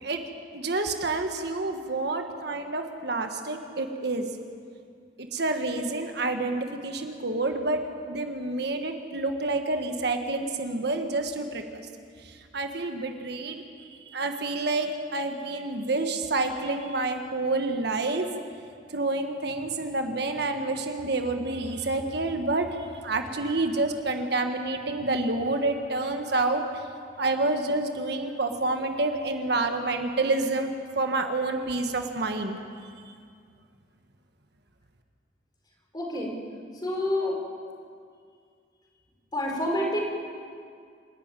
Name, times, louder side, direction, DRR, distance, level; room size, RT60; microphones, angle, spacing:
voice 1, 0.5-4.3 5.3-11.8 12.2-13.6 14.1-18.3 18.9-26.6 27.2-30.7 30.9-32.6 33.0-33.1, right 2 dB, 60° right, 5 dB, 1.4 m, -28 dB
voice 2, 35.9-36.3 36.8-37.4 39.3-40.1, left 1 dB, 25° left, -1 dB, 4.6 m, -28 dB
28.0 x 11.5 x 9.0 m, 2.2 s
head